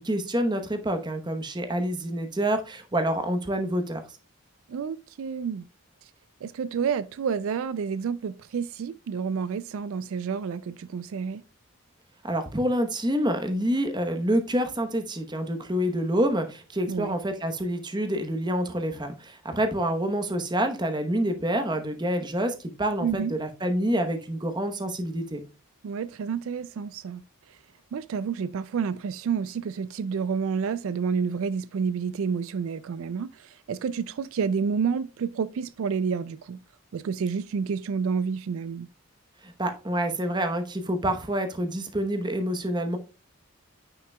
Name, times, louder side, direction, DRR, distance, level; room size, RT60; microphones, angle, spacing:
voice 1, 0.0-4.0 12.2-25.4 39.4-43.0, right 1 dB, 20° right, 0.9 m, -27 dB
voice 2, 4.7-5.6 6.4-11.4 16.9-17.2 23.0-23.3 25.8-27.2 27.5-27.6 27.9-36.6 36.9-38.9, right 6 dB, 70° right, 0.3 m, -29 dB
9.4 x 5.7 x 2.2 m
head